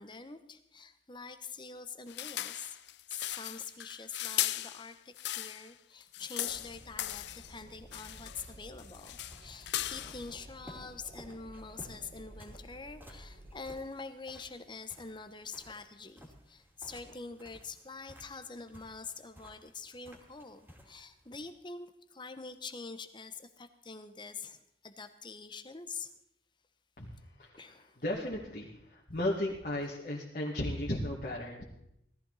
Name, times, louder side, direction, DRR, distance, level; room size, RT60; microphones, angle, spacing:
voice 1, 0.0-2.8 3.1-26.1 27.6-28.0, left 4 dB, 25° left, 10 dB, 1.1 m, -45 dB
sound 1, 2.1-5.7 6.0-7.5 7.9-8.5 8.8-10.3, left 14 dB, 70° left, 0.5 m, -38 dB
Wind, 6.5-13.7, right 1 dB, 55° right, 2.8 m, -53 dB
sound 2, 8.8-21.5, equal, 10° right, 2.7 m, -57 dB
voice 2, 27.0-31.6, left 1 dB, 50° left, -4 dB, 2.1 m, -35 dB
18.0 x 14.0 x 4.2 m, 0.76 s
head